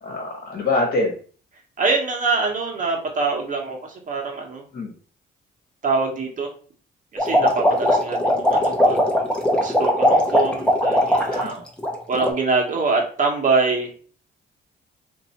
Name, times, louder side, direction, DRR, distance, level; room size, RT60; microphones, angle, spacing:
voice 1, 0.0-1.1 4.7-4.9 11.3-11.5, left 2 dB, 40° left, 0 dB, 1.4 m, -24 dB
voice 2, 1.8-3.8 4.1-4.6 5.8-6.5 7.1-9.1 9.5-11.6 12.1-13.9, right 4 dB, 40° right, 0 dB, 1.2 m, -24 dB
sound 1, 7.2-11.5 11.8-12.3, equal, 5° left, 0.9 m, -19 dB
2.7 x 2.6 x 4.2 m, 0.43 s
cardioid pair, 90°, 20 cm